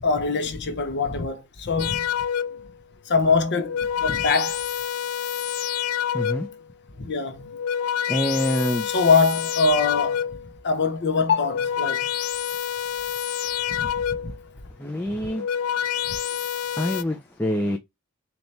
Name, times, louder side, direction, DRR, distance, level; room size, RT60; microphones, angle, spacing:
voice 1, 0.0-2.0 3.1-4.6 7.0-7.5 8.9-10.3 10.6-12.1 13.8-13.9 14.2-14.3, left 4 dB, 50° left, 0.9 m, -23 dB
sound 1, 1.8-2.7 3.5-6.6 7.3-10.5 11.3-14.4 15.2-17.0, left 9 dB, 90° left, 0.4 m, -28 dB
voice 2, 6.1-6.5 8.1-8.9 14.8-15.5 16.8-17.8, equal, 10° left, 0.4 m, -25 dB
4.1 x 2.9 x 3.3 m
head